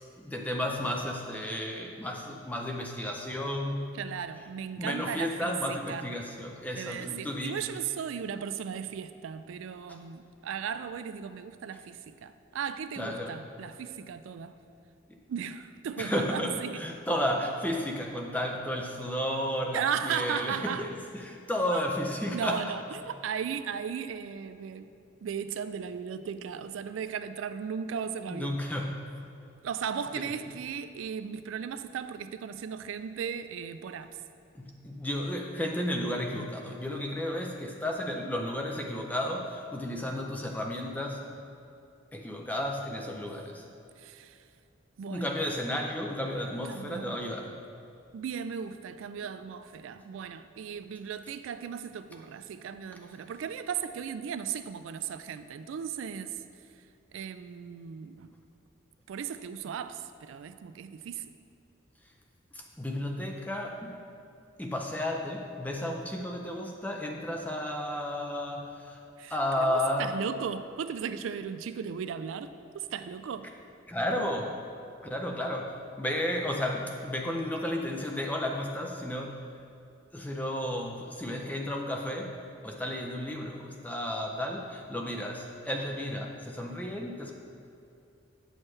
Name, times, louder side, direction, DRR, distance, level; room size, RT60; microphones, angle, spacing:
voice 1, 0.2-4.0 4.8-7.6 9.9-10.0 13.0-13.4 15.1-15.2 16.0-22.6 28.3-29.1 30.2-30.3 34.6-41.3 42.1-43.6 45.1-47.6 62.5-64.0 64.6-69.0 69.3-70.1 73.9-74.6 75.0-79.4 80.1-82.3 82.6-87.3, left 1 dB, 10° left, 2 dB, 0.5 m, -33 dB
voice 2, 3.9-6.1 6.7-14.6 15.3-16.8 19.7-20.9 21.7-21.8 22.3-24.9 25.2-28.6 29.6-34.2 44.0-44.4 45.0-45.3 46.6-47.3 48.1-56.4 57.1-58.3 59.1-61.2 69.2-73.5, right 7 dB, 80° right, 11 dB, 0.3 m, -36 dB
8.7 x 6.3 x 3.2 m, 2.6 s
head